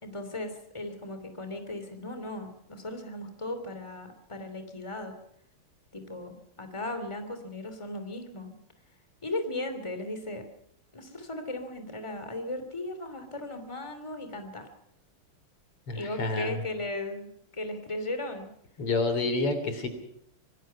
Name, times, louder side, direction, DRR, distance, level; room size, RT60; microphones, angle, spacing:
voice 1, 0.0-5.2 5.9-8.5 9.2-10.4 10.9-14.7 15.9-18.5, left 1 dB, 15° left, 7 dB, 3.0 m, -37 dB
voice 2, 15.9-16.5 18.8-19.9, left 3 dB, 85° left, 8 dB, 4.2 m, -28 dB
25.5 x 18.5 x 5.8 m, 0.74 s
omnidirectional pair, 2.4 m